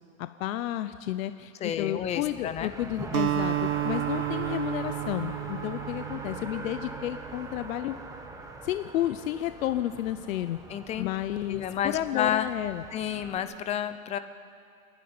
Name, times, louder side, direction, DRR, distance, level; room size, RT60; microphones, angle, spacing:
voice 1, 0.2-7.9 8.6-10.6 11.0-12.9, left 13 dB, 70° left, 11 dB, 0.8 m, -31 dB
voice 2, 1.6-2.7 10.7-11.1 11.5-12.5 12.9-14.2, left 9 dB, 15° left, 11 dB, 0.6 m, -30 dB
Race car auto racing, 2.0-13.4, right 3 dB, 10° right, 1.4 m, -42 dB
Acoustic guitar, 3.1-7.6, right 13 dB, 85° right, 1.4 m, -32 dB
28.0 x 11.0 x 9.6 m, 2.3 s
supercardioid pair, 145°, 42 cm